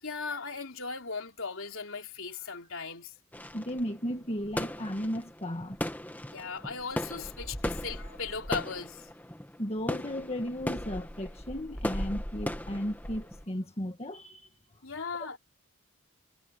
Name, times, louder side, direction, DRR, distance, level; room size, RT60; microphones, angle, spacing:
voice 1, 0.0-3.1 6.3-9.1 14.8-15.4, left 5 dB, 60° left, 3.9 m, -37 dB
sound 1, 3.3-13.4, left 1 dB, 10° left, 1.6 m, -37 dB
voice 2, 3.5-5.8 9.6-14.5, equal, 25° left, 1.8 m, -35 dB
head